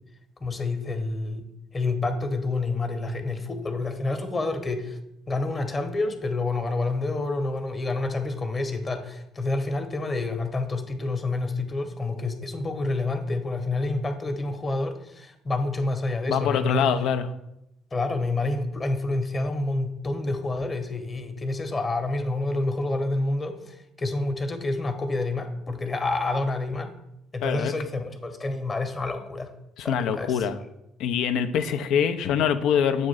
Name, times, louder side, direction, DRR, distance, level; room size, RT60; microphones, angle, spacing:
voice 1, 0.4-1.4 1.7-5.0 5.3-16.9 17.9-26.9 27.3-29.5 29.8-30.4 31.7-31.8, left 2 dB, 35° left, 6 dB, 1.0 m, -28 dB
voice 2, 16.3-17.3 27.4-27.7 29.8-30.6 31.0-33.1, left 8 dB, 65° left, 9 dB, 0.4 m, -24 dB
7.4 x 2.6 x 5.6 m, 0.83 s
hypercardioid pair, 55°, 0 cm